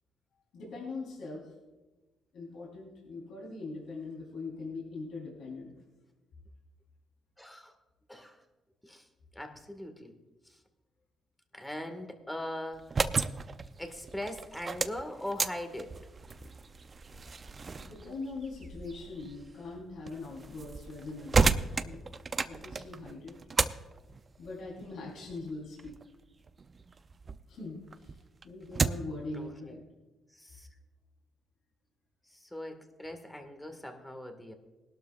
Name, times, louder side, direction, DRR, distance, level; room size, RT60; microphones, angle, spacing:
voice 1, 0.5-1.5 2.3-5.7 17.8-22.1 22.4-23.3 24.4-25.9 27.5-28.2 28.4-29.8, left 3 dB, 70° left, -4 dB, 3.9 m, -42 dB
voice 2, 7.4-7.8 8.1-8.4 8.8-9.1 9.3-10.2 10.5-10.6 11.5-13.2 13.8-15.9 29.3-29.8 30.3-30.7 32.3-34.5, left 1 dB, 5° left, 6 dB, 1.9 m, -41 dB
sound 1, 12.7-27.4 27.8-29.2, right 4 dB, 35° right, 0.5 m, -34 dB
20.0 x 12.0 x 2.5 m, 1.1 s
cardioid pair, 90°, 0 cm